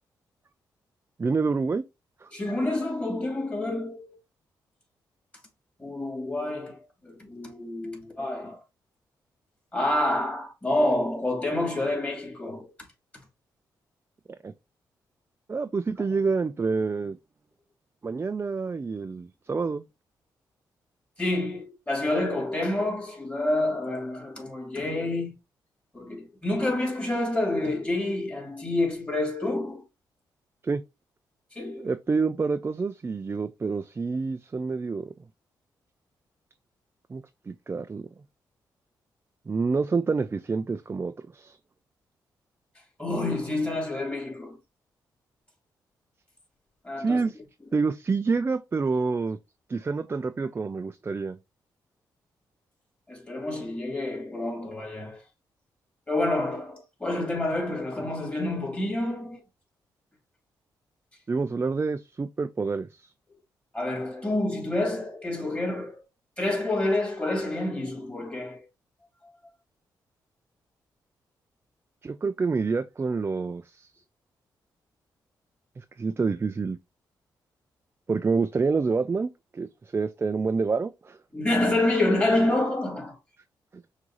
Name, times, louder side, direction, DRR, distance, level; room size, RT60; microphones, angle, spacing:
voice 1, 1.2-1.8 2.2-2.3 14.4-14.5 15.5-17.2 18.0-19.8 30.6-30.8 31.8-35.1 37.1-38.0 39.5-41.6 47.0-47.4 47.7-49.4 49.7-51.4 61.3-63.1 72.0-73.9 75.8-76.8 78.1-81.2, right 4 dB, 30° right, 0.4 m, -28 dB
voice 2, 2.3-4.2 5.8-8.6 9.7-12.7 21.2-25.3 25.9-29.8 31.5-31.9 43.0-44.6 46.8-47.2 53.1-55.2 56.1-59.4 63.7-66.0 66.4-68.6 81.3-83.2, left 2 dB, 20° left, 2.9 m, -28 dB
6.1 x 2.7 x 3.0 m
cardioid pair, 65°, 8 cm